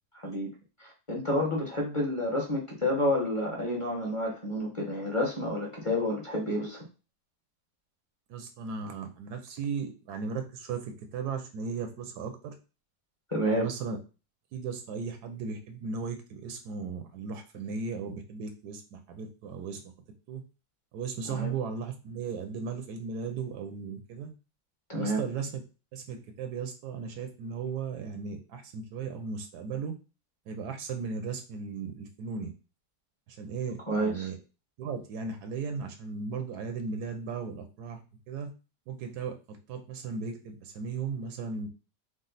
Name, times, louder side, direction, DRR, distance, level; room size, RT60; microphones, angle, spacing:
voice 1, 0.8-6.8 13.3-13.7 21.3-21.5 24.9-25.2 33.9-34.3, left 1 dB, 20° left, -3 dB, 1.1 m, -29 dB
voice 2, 8.3-12.5 13.4-14.0 14.5-19.8 20.3-20.4 20.9-24.3 25.0-25.6 25.9-29.9 30.5-32.5 33.3-34.4 34.8-38.0 38.3-38.5 38.9-41.7, right 5 dB, 80° right, 7 dB, 1.2 m, -36 dB
5.0 x 2.1 x 3.9 m, 0.32 s
omnidirectional pair, 1.7 m